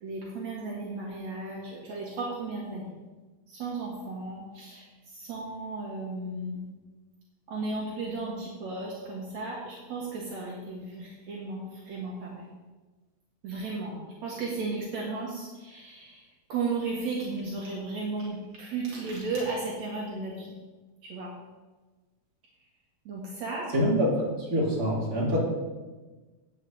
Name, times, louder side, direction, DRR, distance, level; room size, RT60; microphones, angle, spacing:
voice 1, 0.0-2.9 3.5-6.6 7.5-12.5 13.4-20.5 21.0-21.3 23.1-23.7, right 3 dB, 70° right, -3 dB, 2.8 m, -35 dB
voice 2, 23.7-24.1 24.5-25.4, equal, 30° right, -6 dB, 3.9 m, -25 dB
8.8 x 6.5 x 7.8 m, 1.2 s
omnidirectional pair, 3.4 m